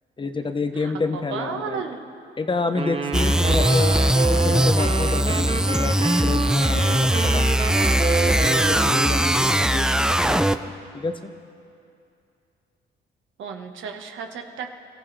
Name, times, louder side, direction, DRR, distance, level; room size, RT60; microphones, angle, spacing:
voice 1, 0.2-1.8 2.4-3.9 4.3-7.5 8.3-10.7 10.9-11.3, left 3 dB, 25° left, 7 dB, 1.0 m, -29 dB
voice 2, 0.8-2.0 13.4-14.7, right 6 dB, 75° right, 4 dB, 1.4 m, -33 dB
Wind instrument woodwind instrument, 2.8-9.7, right 4 dB, 30° right, 1.0 m, -28 dB
sound 1, 3.1-10.8, right 1 dB, 5° right, 0.4 m, -20 dB
28.5 x 14.5 x 3.3 m, 2.5 s
cardioid pair, 90°, 20 cm